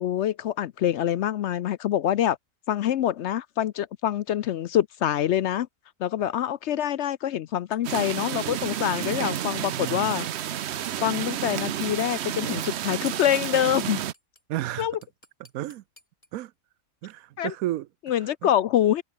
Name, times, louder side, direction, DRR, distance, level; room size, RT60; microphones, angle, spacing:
voice 1, 0.0-2.4 2.7-5.7 6.0-10.3 11.0-14.0 14.8-15.0 17.4-17.5 18.1-19.0, left 11 dB, 65° left, 0.8 m, -25 dB
sound 1, 7.7-10.9 13.3-13.4 13.7-16.3, left 1 dB, 25° left, 4.5 m, -55 dB
sound 2, 7.8-14.1, right 11 dB, 60° right, 0.9 m, -31 dB
voice 2, 9.7-10.2 14.5-14.9 15.5-15.8 16.3-16.5 17.0-17.9 18.2-18.5, right 14 dB, 90° right, 1.1 m, -32 dB
open air
omnidirectional pair, 1.5 m